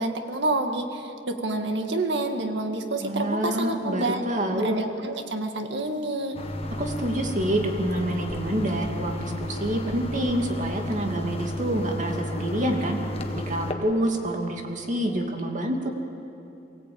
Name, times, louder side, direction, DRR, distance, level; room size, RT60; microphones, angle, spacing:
voice 1, 0.0-4.2 4.5-6.4, right 2 dB, 70° right, 5 dB, 1.9 m, -28 dB
voice 2, 3.0-4.8 6.8-13.0 13.5-15.9, right 1 dB, 45° right, 2 dB, 2.5 m, -27 dB
sound 1, 6.3-13.7, left 1 dB, 35° left, 1.5 m, -32 dB
24.0 x 17.0 x 8.8 m, 2.8 s
head